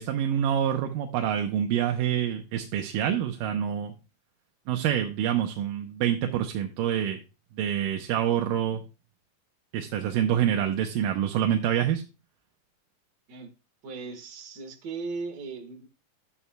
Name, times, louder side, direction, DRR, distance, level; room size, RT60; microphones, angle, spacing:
voice 1, 0.0-3.9 4.7-7.2 7.6-8.8 9.7-12.0, right 10 dB, 80° right, 4 dB, 2.4 m, -26 dB
voice 2, 13.8-15.9, right 4 dB, 45° right, 4 dB, 1.5 m, -37 dB
12.5 x 8.5 x 2.2 m, 0.29 s
omnidirectional pair, 4.0 m